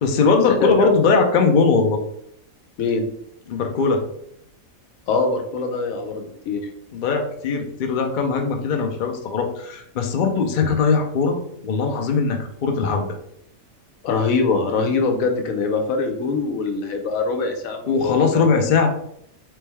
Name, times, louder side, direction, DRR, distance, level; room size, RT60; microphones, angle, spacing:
voice 1, 0.0-2.0 3.5-4.0 6.9-13.1 17.9-18.9, left 4 dB, 55° left, 3 dB, 0.5 m, -20 dB
voice 2, 5.1-6.6 14.0-18.5, left 4 dB, 80° left, 4 dB, 1.1 m, -23 dB
3.4 x 3.2 x 3.3 m, 0.72 s
omnidirectional pair, 1.5 m